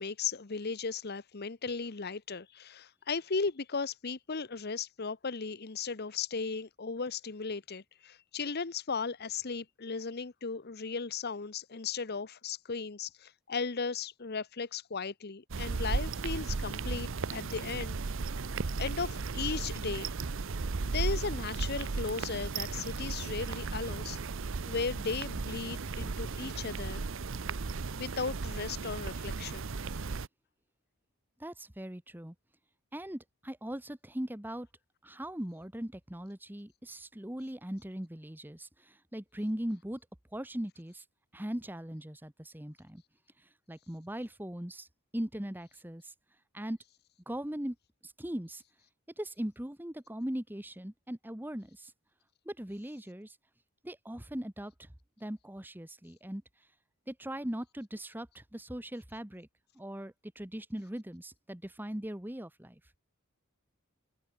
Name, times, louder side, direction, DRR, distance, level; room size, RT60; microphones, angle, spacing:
voice 1, 0.0-18.0 18.8-20.1 20.9-24.2 24.7-27.0 28.0-29.7, left 5 dB, 45° left, 0.8 m, -36 dB
sound 1, 15.5-30.3, right 4 dB, 60° right, 0.7 m, -35 dB
voice 2, 31.4-32.3 32.9-34.7 35.0-40.0 40.3-41.0 41.3-43.0 43.7-44.9 45.1-46.1 46.5-46.8 47.3-47.8 48.0-48.6 49.2-51.9 52.4-53.4 53.8-56.4 57.1-59.5 59.7-62.8, equal, 10° right, 1.1 m, -39 dB
open air
head